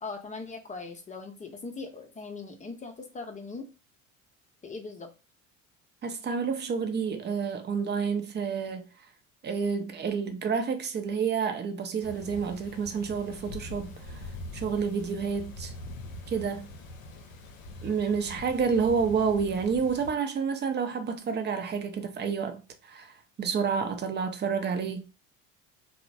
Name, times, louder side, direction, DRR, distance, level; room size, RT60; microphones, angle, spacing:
voice 1, 0.0-3.7 4.6-5.1, left 4 dB, 20° left, 0.7 m, -40 dB
voice 2, 6.0-8.9 9.4-14.2 14.5-15.7 16.3-16.7 17.8-25.1, right 6 dB, 25° right, 0.6 m, -29 dB
sound 1, 12.0-20.1, left 1 dB, 85° left, 0.5 m, -43 dB
2.9 x 2.0 x 2.6 m
hypercardioid pair, 65°, 40 cm